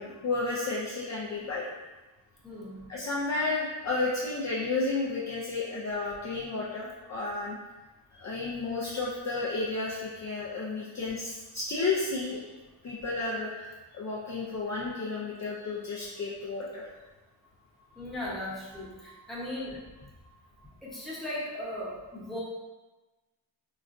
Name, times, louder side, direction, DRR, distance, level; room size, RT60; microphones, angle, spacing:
voice 1, 0.0-1.6 2.9-7.6 8.1-12.4 12.8-16.9, left 3 dB, 40° left, -6 dB, 0.4 m, -32 dB
voice 2, 2.4-2.8 17.9-19.8 20.8-22.4, left 1 dB, ahead, -8 dB, 0.7 m, -37 dB
4.0 x 2.1 x 2.5 m, 1.2 s
wide cardioid pair, 145°, 48 cm